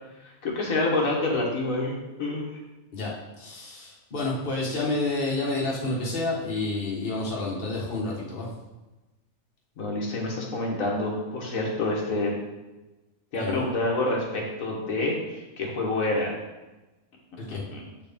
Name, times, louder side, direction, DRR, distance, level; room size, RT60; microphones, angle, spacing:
voice 1, 0.2-2.5 9.8-12.3 13.3-16.3 17.5-17.8, left 2 dB, 90° left, -2 dB, 1.7 m, -27 dB
voice 2, 2.9-8.5 13.4-13.6 17.4-17.6, left 2 dB, 45° left, -4 dB, 1.5 m, -29 dB
8.0 x 4.2 x 3.5 m, 1.1 s
omnidirectional pair, 1.4 m